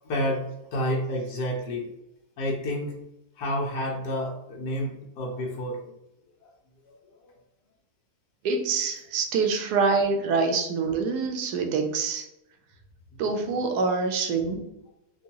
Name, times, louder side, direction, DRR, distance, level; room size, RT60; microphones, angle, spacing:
voice 1, 0.0-1.9 2.4-3.0 3.4-5.8 7.2-7.4 13.1-13.2, equal, 80° left, -2 dB, 1.4 m, -29 dB
voice 2, 8.4-12.2 13.2-14.7, right 4 dB, 80° right, 3 dB, 1.2 m, -25 dB
4.4 x 2.3 x 2.9 m, 0.87 s
omnidirectional pair, 1.7 m